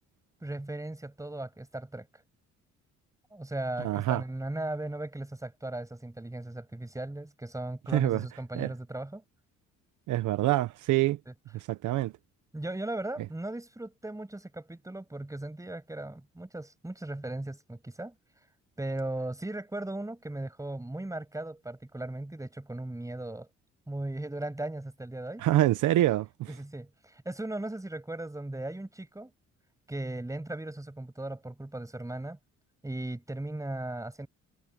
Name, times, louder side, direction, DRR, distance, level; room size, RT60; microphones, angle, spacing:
voice 1, 0.4-2.1 3.3-9.2 11.3-11.4 12.5-18.1 18.8-23.5 23.9-25.4 26.5-29.3 29.9-32.4 32.8-34.3, right 1 dB, 10° right, 6.2 m, -37 dB
voice 2, 3.8-4.2 7.9-8.2 8.5-8.7 10.1-11.2 11.7-12.1 25.4-26.3, right 15 dB, 80° right, 0.8 m, -25 dB
cardioid pair, 90°, 30 cm